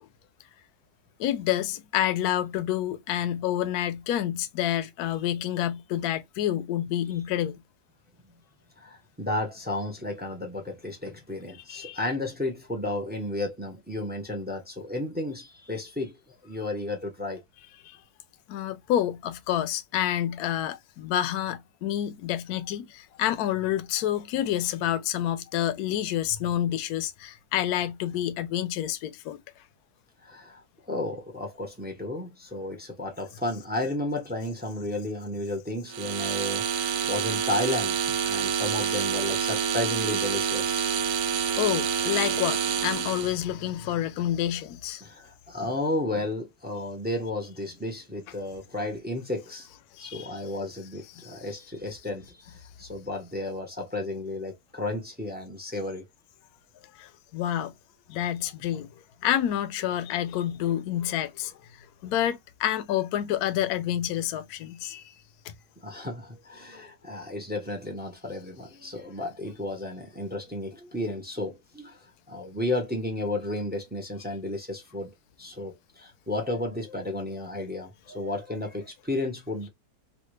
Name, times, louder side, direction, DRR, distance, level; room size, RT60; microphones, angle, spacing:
voice 1, 1.2-7.6 11.7-12.0 17.8-18.0 18.5-29.4 41.6-45.1 49.9-50.3 51.1-51.5 56.9-57.7 58.1-58.9 59.2-65.1 65.4-65.5, left 11 dB, 70° left, 1.0 m, -28 dB
voice 2, 8.8-16.2 16.4-17.4 30.2-40.9 45.0-49.7 50.0-56.1 65.8-75.1 75.4-79.7, left 1 dB, 15° right, 0.4 m, -33 dB
sound 1, 35.9-43.4, right 7 dB, 70° right, 1.0 m, -27 dB
3.2 x 2.5 x 3.1 m
omnidirectional pair, 1.8 m